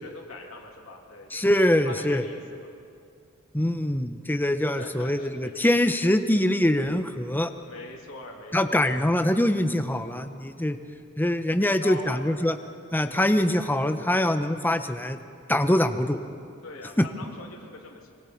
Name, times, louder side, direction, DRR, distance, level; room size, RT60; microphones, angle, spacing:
voice 1, 0.0-1.6 1.8-2.7 4.6-5.5 7.7-9.0 11.6-12.2 16.6-18.1, left 2 dB, 80° left, -1 dB, 2.7 m, -42 dB
voice 2, 1.3-2.2 3.5-7.5 8.5-10.8 11.2-12.5 12.9-15.2 15.5-16.2 17.0-17.1, left 1 dB, 10° left, 8 dB, 0.8 m, -23 dB
25.0 x 23.0 x 4.5 m, 2.3 s
head